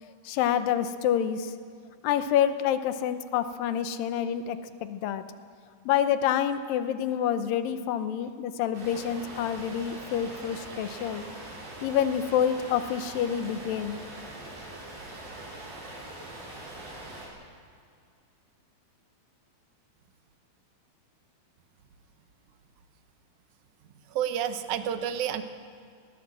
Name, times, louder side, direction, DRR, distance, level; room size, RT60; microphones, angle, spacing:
voice 1, 0.0-1.5 2.0-5.2 5.9-11.3 11.8-14.0, left 9 dB, 75° left, 11 dB, 2.4 m, -27 dB
sound 1, 8.7-17.3, right 2 dB, 90° right, 7.6 m, -42 dB
voice 2, 24.1-25.4, right 9 dB, 70° right, 9 dB, 2.0 m, -29 dB
19.5 x 18.5 x 7.6 m, 2.2 s
omnidirectional pair, 4.4 m